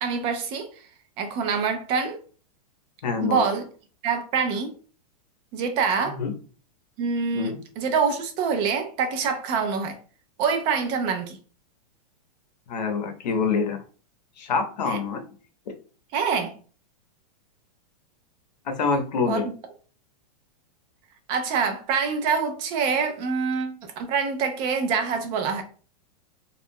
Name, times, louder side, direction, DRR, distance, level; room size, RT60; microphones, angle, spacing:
voice 1, 0.0-0.7 1.2-2.2 3.2-3.7 4.0-4.7 5.5-6.2 7.0-10.0 10.4-11.4 14.9-15.0 16.1-16.5 19.2-19.5 21.3-25.6, right 5 dB, 30° right, 6 dB, 0.4 m, -25 dB
voice 2, 3.0-3.4 6.0-6.3 7.3-7.6 12.7-13.8 14.4-15.2 18.7-19.4, left 5 dB, 90° left, 5 dB, 0.7 m, -26 dB
2.3 x 2.1 x 3.4 m, 0.40 s
supercardioid pair, 150°, 21 cm